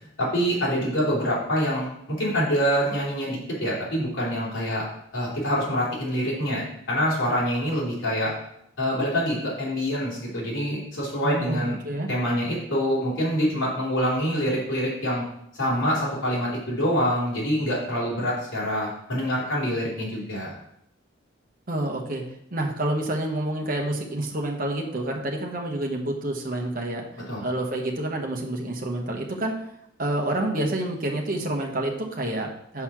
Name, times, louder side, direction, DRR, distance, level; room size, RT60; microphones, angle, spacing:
voice 1, 0.2-4.8 5.1-8.3 8.8-11.8 12.1-15.2 15.6-20.6 27.3-27.4, equal, 70° left, -5 dB, 3.0 m, -25 dB
voice 2, 11.2-12.1 21.7-22.2 22.5-27.0 27.4-29.5 30.0-32.8, right 1 dB, 45° right, 1 dB, 1.1 m, -28 dB
5.7 x 4.2 x 6.0 m, 0.76 s
head